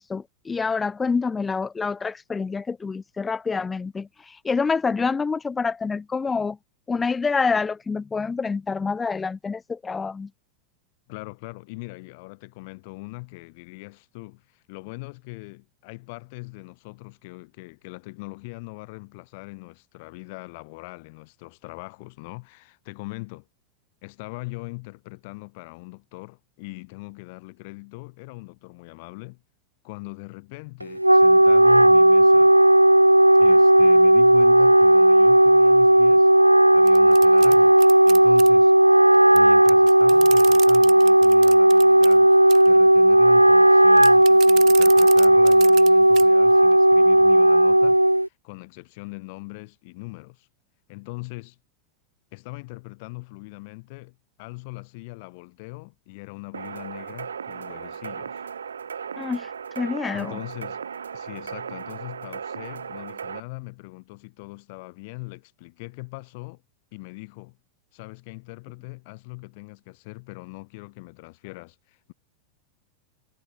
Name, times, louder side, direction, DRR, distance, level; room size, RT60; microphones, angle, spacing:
voice 1, 0.0-6.6 6.9-10.3 59.2-59.5 59.8-60.3, left 4 dB, 15° left, 1.1 m, -27 dB
voice 2, 11.1-23.5 24.0-29.4 29.8-32.5 33.4-36.3 36.7-37.8 38.1-38.7 39.3-48.0 48.2-50.5 50.9-51.6 52.3-58.4 60.1-60.8 61.1-66.6 66.9-67.6 67.9-72.1, left 26 dB, 50° left, 3.8 m, -41 dB
Wind instrument woodwind instrument, 30.8-48.3, right 1 dB, 85° right, 0.3 m, -15 dB
sound 1, 36.9-38.5 39.4-39.5 39.6-42.1 42.5-42.8 44.0-45.9 46.1-46.2 46.7-46.8, right 18 dB, 40° right, 2.6 m, -35 dB
sound 2, 56.5-63.4, right 7 dB, 70° right, 1.3 m, -36 dB
figure-of-eight pair, 90°, 0 cm